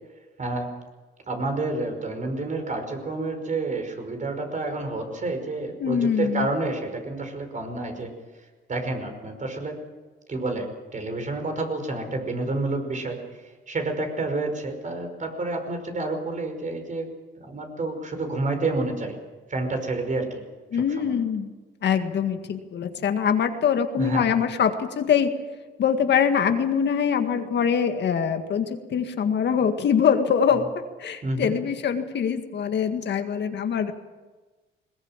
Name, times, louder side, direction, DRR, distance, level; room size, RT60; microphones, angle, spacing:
voice 1, 1.3-8.1 8.7-9.8 10.3-13.2 13.7-17.1 17.4-19.2 19.5-20.4 20.7-21.1 24.0-24.3 31.2-31.5, right 2 dB, 40° right, 5 dB, 5.3 m, -29 dB
voice 2, 5.8-6.5 20.7-21.5 21.8-25.3 25.8-30.7 31.0-33.9, left 7 dB, 60° left, 6 dB, 1.9 m, -23 dB
21.0 x 20.0 x 7.5 m, 1.3 s
cardioid pair, 90°, 20 cm